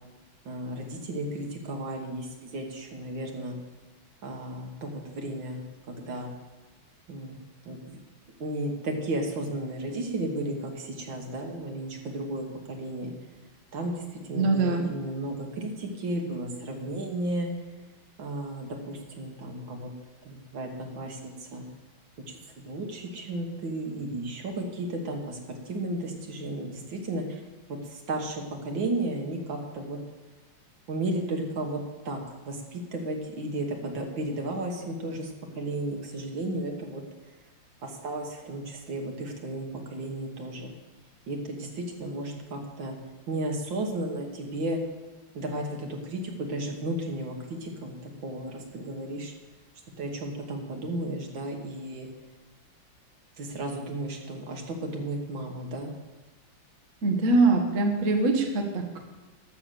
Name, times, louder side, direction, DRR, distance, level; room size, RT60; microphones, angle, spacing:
voice 1, 0.5-3.6 4.2-5.6 5.9-6.3 7.1-7.4 7.7-8.0 8.4-13.1 13.7-17.5 18.2-19.9 20.3-21.7 22.3-25.4 25.7-27.4 27.9-30.0 30.9-31.8 32.1-32.2 32.5-37.0 37.8-40.7 41.3-43.0 43.3-44.8 45.3-49.3 50.0-52.1 53.4-55.9, right 1 dB, 70° right, 3 dB, 2.1 m, -34 dB
voice 2, 14.4-14.8 57.0-59.0, right 3 dB, 45° right, 2 dB, 1.5 m, -23 dB
13.0 x 6.1 x 6.8 m, 1.2 s
omnidirectional pair, 2.2 m